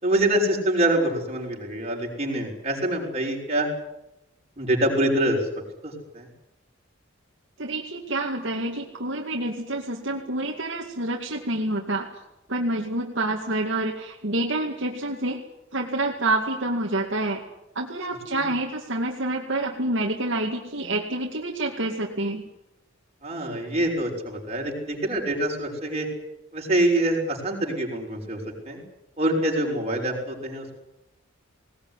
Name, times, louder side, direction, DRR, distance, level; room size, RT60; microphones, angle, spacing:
voice 1, 0.0-3.7 4.6-5.5 5.8-6.3 18.3-18.5 23.2-26.1 26.5-28.8 29.2-30.8, right 1 dB, 35° right, -1 dB, 6.0 m, -25 dB
voice 2, 7.6-12.1 12.5-15.4 15.7-17.4 17.8-22.4, right 2 dB, 65° right, 0 dB, 2.3 m, -27 dB
20.0 x 19.0 x 9.9 m, 0.90 s
head